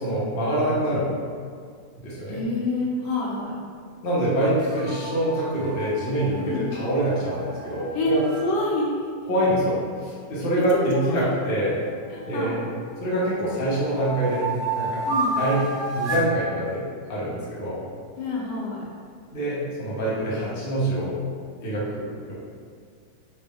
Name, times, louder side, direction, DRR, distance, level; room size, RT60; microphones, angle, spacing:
voice 1, 0.0-1.1 2.0-2.4 4.0-8.2 9.3-11.8 12.3-12.6 13.0-14.5 14.8-15.0 15.4-16.8 17.1-17.8 19.3-21.2 21.6-22.3, right 1 dB, 45° left, -8 dB, 0.7 m, -25 dB
voice 2, 2.3-3.5 6.4-6.7 7.9-8.9 10.6-10.8 11.1-11.3 12.1-12.6 15.1-15.4 18.2-18.9, left 2 dB, 70° left, -4 dB, 1.2 m, -27 dB
sound 1, 4.6-8.4 11.4-12.6 13.1-16.3, right 2 dB, 80° right, 1.6 m, -32 dB
4.2 x 2.1 x 3.4 m, 2.1 s
omnidirectional pair, 2.0 m